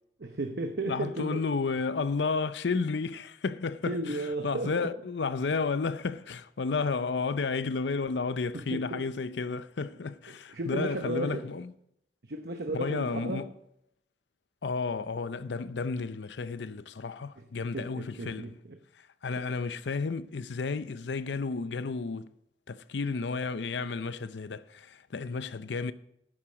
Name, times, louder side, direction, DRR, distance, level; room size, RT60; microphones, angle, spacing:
voice 1, 0.2-1.5 3.9-4.9 8.5-9.1 10.5-11.4 12.2-13.5 17.4-18.8 19.3-19.4, right 2 dB, 65° right, 0.9 m, -34 dB
voice 2, 0.9-11.7 12.7-13.5 14.6-18.5 19.2-22.3 22.7-25.9, left 4 dB, 85° left, 0.6 m, -32 dB
11.0 x 8.8 x 5.1 m
head